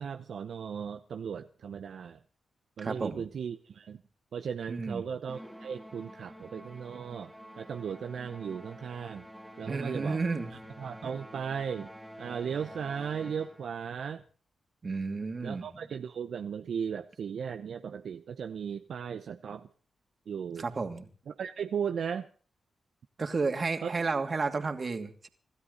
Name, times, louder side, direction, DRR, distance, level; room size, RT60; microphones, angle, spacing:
voice 1, 0.0-2.2 2.8-4.0 4.3-9.3 9.6-10.2 10.8-11.9 12.2-14.2 15.4-19.7 20.3-20.7 21.3-22.3 23.8-23.9, right 7 dB, 75° right, 8 dB, 0.8 m, -36 dB
voice 2, 2.8-3.3 4.7-5.0 9.6-10.5 14.8-15.7 20.6-21.1 23.2-25.3, right 4 dB, 50° right, 6 dB, 2.6 m, -32 dB
Musical instrument, 5.3-13.8, equal, ahead, 3.3 m, -48 dB
26.5 x 12.5 x 4.0 m, 0.41 s
supercardioid pair, 45°, 0 cm